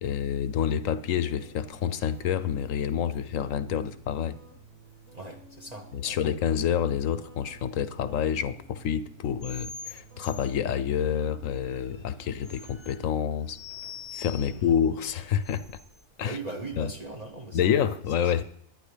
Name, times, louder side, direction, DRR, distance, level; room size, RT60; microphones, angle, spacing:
voice 1, 0.0-4.4 5.9-13.6 14.1-15.6 16.2-16.4 16.8-16.9 17.5-18.4, left 9 dB, 75° left, 14 dB, 1.0 m, -28 dB
sound 1, 0.6-15.7, right 5 dB, 55° right, 6.3 m, -53 dB
voice 2, 5.1-6.2 14.4-14.7 16.2-17.8, right 2 dB, 30° right, 2 dB, 1.1 m, -39 dB
sound 2, 9.4-16.0, left 6 dB, 30° left, 0.5 m, -45 dB
17.5 x 11.0 x 3.4 m, 0.68 s
omnidirectional pair, 1.4 m